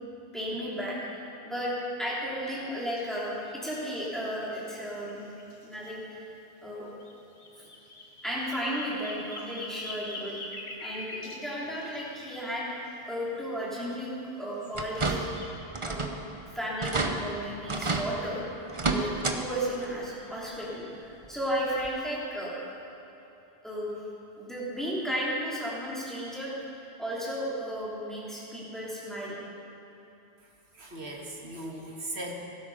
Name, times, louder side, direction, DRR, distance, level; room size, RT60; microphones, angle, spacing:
voice 1, 0.3-1.2 1.4-1.7 2.0-5.2 5.6-6.2 6.6-6.9 8.2-10.4 10.8-12.6 13.1-14.1 14.4-15.3 15.8-16.1 16.5-18.4 18.9-22.5 23.6-23.9 24.4-26.7 27.0-29.4, equal, ahead, -8 dB, 3.8 m, -34 dB
sound 1, 3.0-3.1 3.6-5.9 7.0-12.9 13.9-15.5, left 2 dB, 80° left, 1.9 m, -44 dB
sound 2, 14.7-15.4 15.7-16.2 16.5-16.6 16.8-17.1 17.7-18.1 18.7-19.4 19.7-19.9 21.2-21.3 21.8-21.9, right 3 dB, 30° right, 0.9 m, -29 dB
voice 2, 30.7-32.3, right 1 dB, 80° right, 0 dB, 2.1 m, -38 dB
17.5 x 12.5 x 5.2 m, 3.0 s
omnidirectional pair, 1.1 m